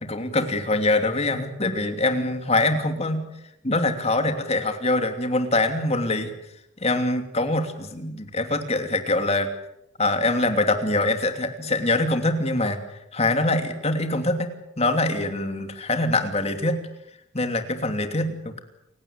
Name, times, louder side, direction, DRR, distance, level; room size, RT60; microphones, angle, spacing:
voice 1, 0.0-3.2 3.6-6.3 6.8-9.5 10.0-12.8 13.1-14.5 14.8-16.8 17.3-18.6, left 2 dB, 35° left, 7 dB, 3.0 m, -24 dB
29.0 x 17.0 x 8.7 m, 0.82 s
head